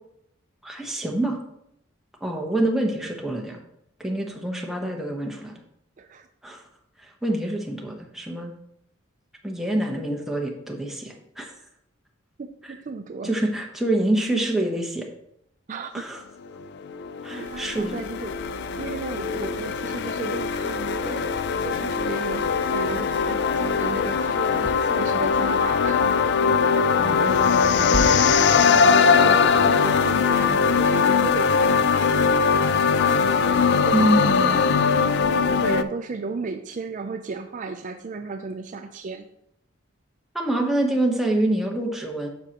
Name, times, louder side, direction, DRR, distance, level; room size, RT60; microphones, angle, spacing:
voice 1, 0.6-1.4 2.2-3.6 4.0-5.6 6.4-6.6 7.0-8.5 9.4-11.5 13.2-15.1 15.9-16.2 17.2-18.0 27.0-28.2 33.9-34.6 40.3-42.3, right 1 dB, ahead, 0 dB, 1.0 m, -26 dB
voice 2, 6.0-6.3 12.4-13.3 15.7-16.0 17.3-18.4 18.8-26.0 28.2-34.0 34.2-34.6 35.4-39.3, right 4 dB, 40° right, 6 dB, 0.4 m, -35 dB
sound 1, 16.5-35.8, left 5 dB, 60° left, 0.4 m, -21 dB
sound 2, 17.4-28.0, right 1 dB, 60° right, 1.2 m, -40 dB
9.5 x 6.3 x 2.9 m, 0.76 s
head